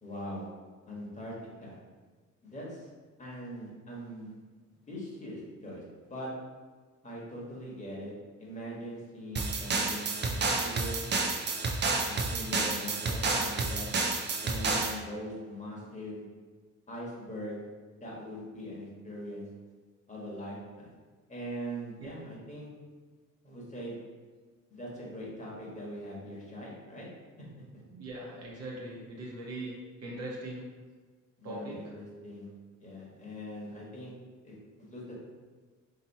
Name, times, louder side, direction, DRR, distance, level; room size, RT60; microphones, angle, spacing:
voice 1, 0.0-0.5 0.9-1.3 1.6-1.8 2.4-2.9 3.2-4.4 4.8-6.3 7.0-8.1 8.4-11.0 12.0-13.9 14.4-16.2 16.9-17.6 18.0-19.5 20.1-20.9 21.3-22.7 23.4-24.0 24.7-27.1 27.4-27.5 31.4-32.5 32.8-34.1 34.4-35.1, equal, 25° left, -5 dB, 1.3 m, -41 dB
sound 1, 9.4-15.0, right 3 dB, 35° right, 0.5 m, -30 dB
voice 2, 27.9-29.7 30.0-30.7 31.4-31.8, right 1 dB, 55° right, -3 dB, 1.0 m, -40 dB
2.9 x 2.8 x 4.1 m, 1.4 s
cardioid pair, 90°, 30 cm